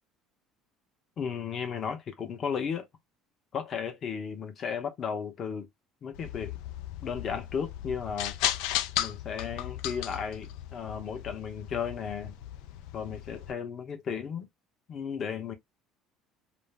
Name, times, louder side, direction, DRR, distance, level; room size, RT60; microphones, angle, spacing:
voice 1, 1.2-2.9 3.5-5.7 6.0-6.6 7.0-8.3 9.0-12.4 12.9-14.5 14.9-15.5, left 7 dB, 35° left, 0.7 m, -34 dB
sound 1, 6.1-13.5, left 13 dB, 80° left, 0.3 m, -36 dB
2.5 x 2.0 x 3.2 m
cardioid pair, 155°, 0 cm